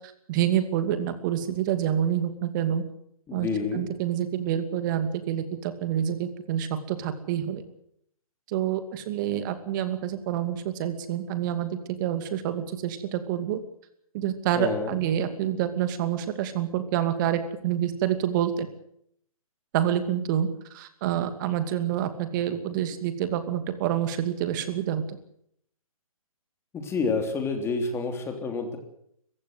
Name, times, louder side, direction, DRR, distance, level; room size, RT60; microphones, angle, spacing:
voice 1, 0.3-2.8 3.3-3.5 3.7-7.6 8.5-13.6 14.1-18.7 19.7-20.5 20.7-25.0, right 10 dB, 35° right, 10 dB, 2.6 m, -27 dB
voice 2, 3.3-3.8 14.6-15.0 26.7-28.8, left 4 dB, 15° left, 5 dB, 3.4 m, -28 dB
24.5 x 15.5 x 8.0 m, 0.71 s
figure-of-eight pair, 135°, 18 cm